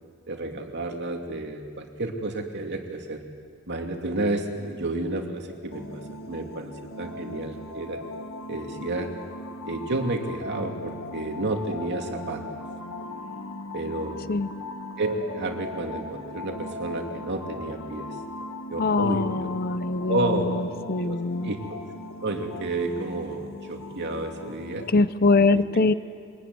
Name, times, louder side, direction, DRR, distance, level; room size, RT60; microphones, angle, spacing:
voice 1, 0.3-3.2 3.7-6.0 6.3-8.0 8.5-9.1 9.6-12.4 13.7-14.2 15.0-18.1 18.7-19.5 20.1-20.6 21.0-21.8 22.2-24.9 25.4-25.9, right 2 dB, 55° right, 3 dB, 2.7 m, -31 dB
sound 1, 5.7-24.9, left 2 dB, 70° left, 1.8 m, -38 dB
voice 2, 18.8-21.5 24.9-25.9, left 3 dB, 45° left, 14 dB, 0.7 m, -23 dB
23.5 x 21.5 x 9.6 m, 2.2 s
head